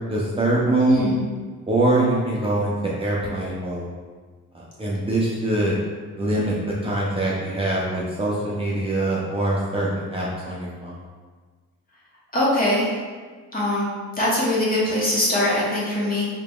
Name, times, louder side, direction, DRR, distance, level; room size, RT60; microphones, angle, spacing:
voice 1, 0.1-1.0 1.7-3.9 4.5-5.8 6.2-6.6 6.8-11.0, right 2 dB, 20° right, -6 dB, 0.6 m, -23 dB
voice 2, 0.8-1.2 12.3-12.9 13.5-13.9 14.2-16.3, left 1 dB, 30° left, -7 dB, 1.4 m, -21 dB
4.8 x 3.0 x 2.4 m, 1.5 s
cardioid pair, 90°, 30 cm